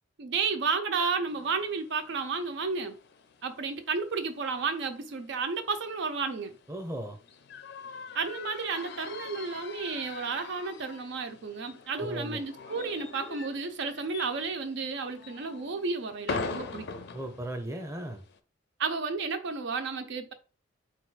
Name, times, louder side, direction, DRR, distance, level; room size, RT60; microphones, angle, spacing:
voice 1, 0.2-3.0 3.4-6.6 8.1-16.9 18.8-20.3, right 4 dB, 65° right, 0.5 m, -32 dB
sound 1, 1.3-18.4, left 4 dB, 60° left, 0.5 m, -43 dB
voice 2, 6.7-7.2 12.0-12.4 17.1-18.2, right 1 dB, 15° right, 0.7 m, -36 dB
3.9 x 2.3 x 4.6 m
head